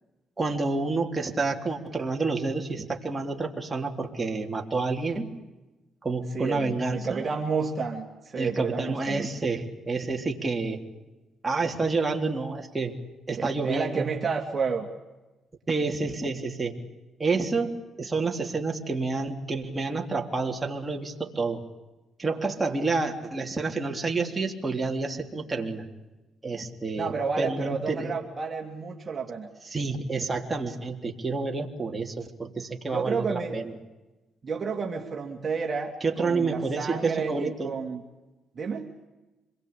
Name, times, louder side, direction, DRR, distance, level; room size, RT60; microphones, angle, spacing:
voice 1, 0.4-5.3 6.0-7.3 8.4-10.8 11.4-13.0 13.3-14.1 15.7-16.8 17.2-21.6 22.2-25.9 26.4-28.1 29.7-33.7 36.0-37.7, right 3 dB, 20° right, 1 dB, 3.6 m, -29 dB
voice 2, 6.3-9.3 13.3-14.9 27.0-29.5 32.9-33.6 34.4-38.0 38.5-39.0, right 5 dB, 35° right, 1 dB, 2.9 m, -31 dB
27.0 x 22.0 x 8.6 m, 1.1 s
cardioid pair, 90°, 0 cm